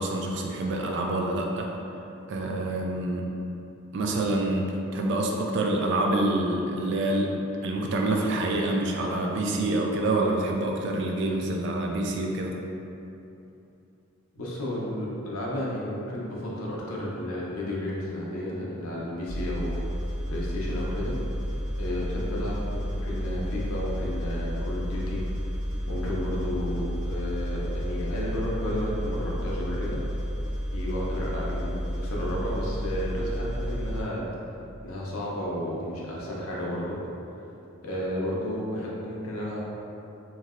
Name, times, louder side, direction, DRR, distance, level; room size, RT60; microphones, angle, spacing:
voice 1, 0.0-1.7 2.3-3.3 3.9-7.3 7.6-12.5, right 2 dB, 55° right, 0 dB, 0.3 m, -27 dB
voice 2, 14.4-19.8 20.3-21.1 21.8-25.2 25.9-30.0 30.7-34.3 34.8-37.0 37.8-39.6, left 1 dB, 80° left, -5 dB, 0.6 m, -32 dB
sound 1, 19.3-34.0, equal, 90° right, 1.0 m, -31 dB
3.1 x 2.7 x 2.4 m, 2.8 s
head